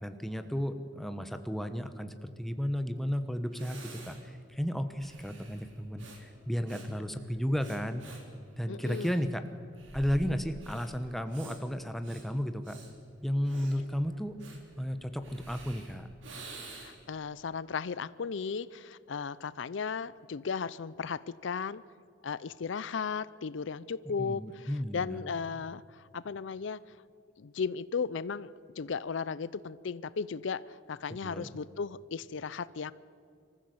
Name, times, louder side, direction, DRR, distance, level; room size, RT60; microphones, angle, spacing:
voice 1, 0.0-8.0 8.6-9.4 9.9-12.8 13.2-14.4 14.8-16.1 24.2-25.2 31.1-31.5, equal, ahead, 8 dB, 1.0 m, -33 dB
Breathing, 3.1-3.2 3.5-17.1, right 2 dB, 70° right, 3.6 m, -50 dB
voice 2, 8.7-9.2 16.7-21.8 22.2-26.8 27.4-32.9, left 5 dB, 70° left, 18 dB, 0.5 m, -36 dB
24.5 x 14.5 x 7.8 m, 2.4 s
head